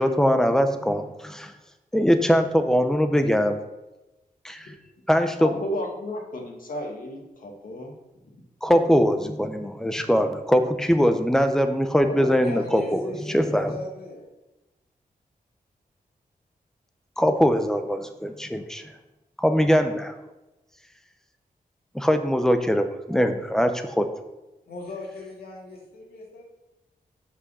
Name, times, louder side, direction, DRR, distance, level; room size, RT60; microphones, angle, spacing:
voice 1, 0.0-1.5 1.9-3.6 4.4-4.7 5.1-5.5 8.6-13.0 13.3-13.7 17.2-18.8 19.4-20.1 21.9-24.1, equal, 5° left, 7 dB, 0.7 m, -22 dB
voice 2, 5.4-7.9, left 1 dB, 65° left, 1 dB, 1.6 m, -33 dB
voice 3, 12.1-14.3 24.7-26.4, left 2 dB, 80° left, -2 dB, 2.4 m, -37 dB
6.3 x 5.5 x 6.1 m, 1.0 s
wide cardioid pair, 115°, 15 cm